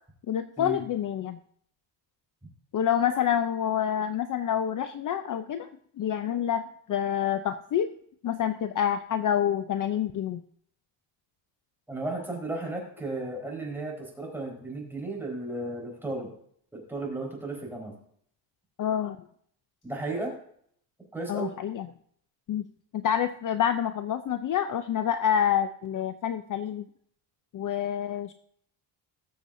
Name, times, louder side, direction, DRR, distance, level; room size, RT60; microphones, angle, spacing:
voice 1, 0.3-1.4 2.7-5.7 6.0-7.9 8.2-10.4 18.8-19.2 21.3-21.9 22.5-22.7 22.9-26.9 27.5-28.3, left 9 dB, 45° left, 10 dB, 0.6 m, -27 dB
voice 2, 11.9-16.3 16.7-18.0 19.8-20.3 21.1-21.5, right 2 dB, 5° right, -1 dB, 4.3 m, -34 dB
19.5 x 7.2 x 2.6 m, 0.64 s
cardioid pair, 125°, 45 cm